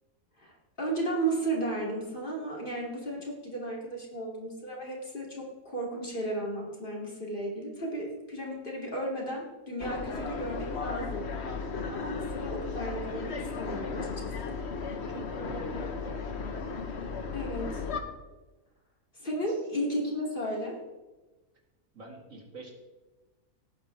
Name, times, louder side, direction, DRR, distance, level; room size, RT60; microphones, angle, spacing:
voice 1, 0.4-11.3 11.9-14.6 17.3-17.8 19.2-20.8, right 1 dB, 35° left, -2 dB, 2.8 m, -34 dB
sound 1, 9.8-18.0, left 4 dB, 50° left, 1.3 m, -35 dB
voice 2, 15.1-16.3 19.5-19.6 21.9-22.7, right 1 dB, 60° right, 0 dB, 2.6 m, -45 dB
18.5 x 9.0 x 3.4 m, 1.2 s
omnidirectional pair, 1.6 m